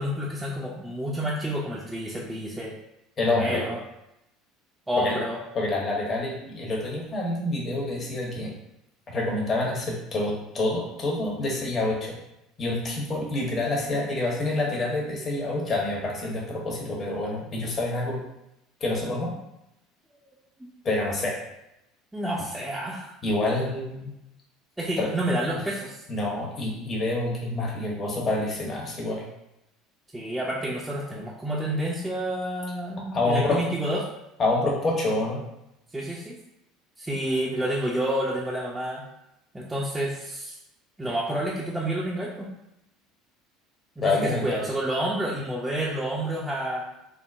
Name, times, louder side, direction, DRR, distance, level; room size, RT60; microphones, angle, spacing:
voice 1, 0.0-2.7 3.3-3.8 4.9-5.4 20.1-20.2 22.1-23.1 24.8-26.0 30.1-34.1 35.9-36.4 37.0-39.0 39.5-40.6 41.0-42.5 44.0-46.8, right 1 dB, 10° right, -5 dB, 0.5 m, -29 dB
voice 2, 3.2-3.6 5.0-5.2 5.5-8.5 9.1-12.1 12.6-18.2 18.8-19.3 20.8-21.3 23.2-24.1 25.0-25.1 26.1-29.2 33.1-33.6 34.4-35.4 44.0-44.4, left 2 dB, 40° left, -2 dB, 1.0 m, -27 dB
3.6 x 2.0 x 2.5 m, 0.86 s
hypercardioid pair, 75°, 0 cm